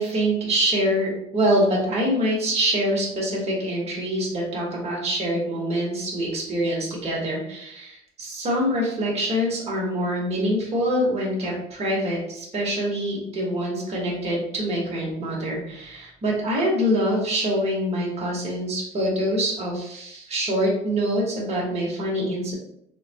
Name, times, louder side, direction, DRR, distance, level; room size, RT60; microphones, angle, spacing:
voice 1, 0.0-22.5, equal, 40° right, -4 dB, 1.1 m, -25 dB
3.5 x 2.2 x 2.7 m, 0.76 s
cardioid pair, 110°, 17 cm